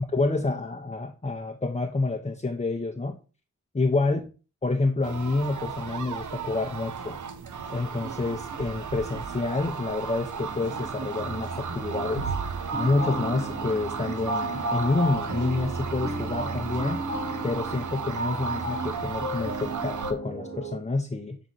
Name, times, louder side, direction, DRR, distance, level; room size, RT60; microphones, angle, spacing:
voice 1, 0.0-3.2 3.7-4.2 4.6-7.2 7.7-12.3 12.7-17.0 17.4-21.4, left 3 dB, 25° left, 3 dB, 0.7 m, -28 dB
sound 1, 5.0-20.1, right 6 dB, 90° right, 0.7 m, -35 dB
sound 2, 10.4-20.8, right 2 dB, 70° right, 1.2 m, -33 dB
7.3 x 4.0 x 3.9 m, 0.34 s
wide cardioid pair, 75°, 29 cm